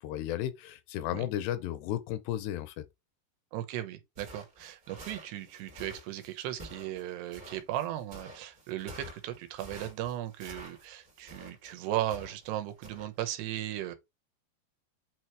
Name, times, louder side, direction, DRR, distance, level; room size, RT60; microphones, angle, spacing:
voice 1, 0.0-2.8, left 12 dB, 90° left, 2.8 m, -34 dB
voice 2, 3.5-14.0, right 13 dB, 80° right, 3.0 m, -36 dB
sound 1, 4.1-12.5 12.8-13.1, right 1 dB, 30° right, 1.9 m, -49 dB
8.5 x 3.0 x 4.6 m
omnidirectional pair, 4.8 m